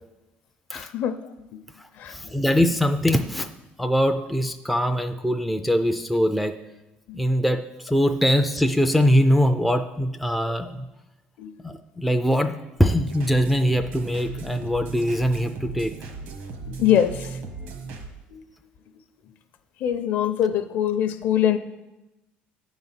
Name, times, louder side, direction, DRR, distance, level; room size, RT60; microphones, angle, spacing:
voice 1, 0.7-1.2 2.0-2.1 7.1-7.2 11.4-11.5 16.7-17.3 18.3-18.4 19.8-21.6, left 10 dB, 50° left, 10 dB, 0.6 m, -23 dB
voice 2, 1.8-3.5 3.8-6.5 7.1-10.9 11.6-15.9, equal, ahead, 5 dB, 0.3 m, -22 dB
sound 1, 13.1-18.1, right 4 dB, 85° right, 1.5 m, -36 dB
11.0 x 4.0 x 7.4 m, 1.0 s
cardioid pair, 160°, 4 cm